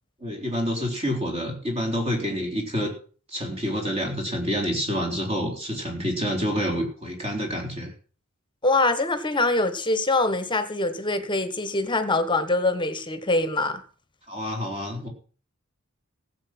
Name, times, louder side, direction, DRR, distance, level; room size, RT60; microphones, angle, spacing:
voice 1, 0.2-2.9 3.3-7.9 14.3-15.1, equal, 30° right, 3.9 m, -28 dB
voice 2, 8.6-13.8, left 2 dB, 20° left, 1.2 m, -24 dB
15.5 x 7.7 x 6.0 m
head